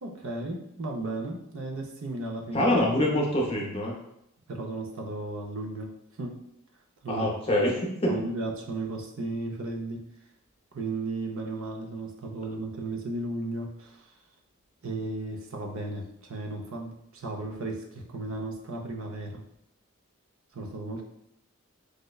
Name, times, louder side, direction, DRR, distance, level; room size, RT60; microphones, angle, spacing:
voice 1, 0.0-2.7 4.5-6.4 7.0-7.3 8.1-10.0 10.7-14.1 14.8-19.4 20.5-21.0, right 2 dB, 75° right, 2 dB, 0.6 m, -35 dB
voice 2, 2.5-3.9 7.1-7.7 8.0-8.1, left 1 dB, 25° left, -2 dB, 0.6 m, -24 dB
4.9 x 2.1 x 2.3 m, 0.78 s
head